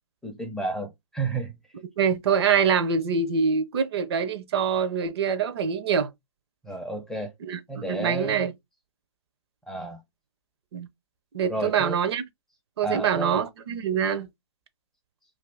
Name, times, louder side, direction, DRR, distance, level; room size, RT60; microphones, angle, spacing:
voice 1, 0.2-1.5 6.6-7.3 7.7-8.5 9.7-10.0 11.5-12.0 12.8-13.4, right 2 dB, 5° left, 0.5 m, -31 dB
voice 2, 2.0-6.1 7.4-8.5 10.7-10.9 11.3-12.2 12.8-14.3, right 6 dB, 50° right, 0.6 m, -25 dB
2.5 x 2.5 x 3.3 m
hypercardioid pair, 135°, 16 cm